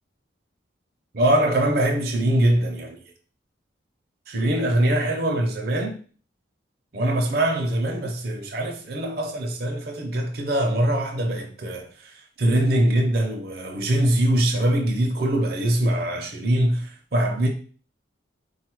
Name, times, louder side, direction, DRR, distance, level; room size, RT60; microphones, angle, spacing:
voice 1, 1.1-3.0 4.3-6.0 6.9-17.5, right 1 dB, 50° right, 0.7 m, -23 dB
4.1 x 2.3 x 4.6 m
head